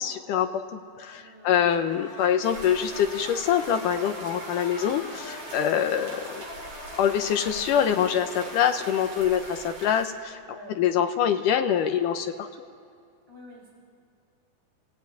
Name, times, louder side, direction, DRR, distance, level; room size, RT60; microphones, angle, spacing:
voice 1, 0.0-6.4 7.0-10.4 10.8-12.5, left 9 dB, 75° left, 7 dB, 2.1 m, -25 dB
voice 2, 1.1-1.6 10.4-10.8 13.3-13.7, left 1 dB, 10° left, -6 dB, 4.4 m, -47 dB
sound 1, 1.7-10.1, left 3 dB, 50° left, 3.9 m, -43 dB
sound 2, 2.4-10.1, right 3 dB, 50° right, 3.9 m, -42 dB
28.5 x 16.0 x 9.1 m, 2.3 s
omnidirectional pair, 4.5 m